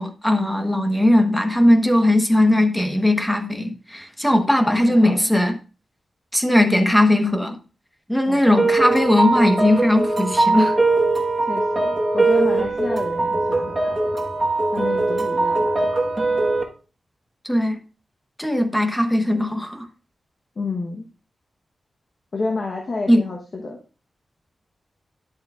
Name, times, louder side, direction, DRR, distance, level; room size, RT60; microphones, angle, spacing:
voice 1, 0.0-5.6 6.3-7.6 8.1-10.8 17.4-17.8 18.4-19.9 23.1-23.2, left 1 dB, 5° left, 6 dB, 1.1 m, -18 dB
voice 2, 4.6-5.3 8.2-8.8 11.4-14.0 14.7-15.9 20.6-21.0 22.3-23.8, left 3 dB, 50° left, 1 dB, 1.0 m, -30 dB
sound 1, 8.6-16.6, right 2 dB, 25° right, 1.3 m, -21 dB
11.0 x 7.2 x 2.4 m, 0.35 s
wide cardioid pair, 125°, 0 cm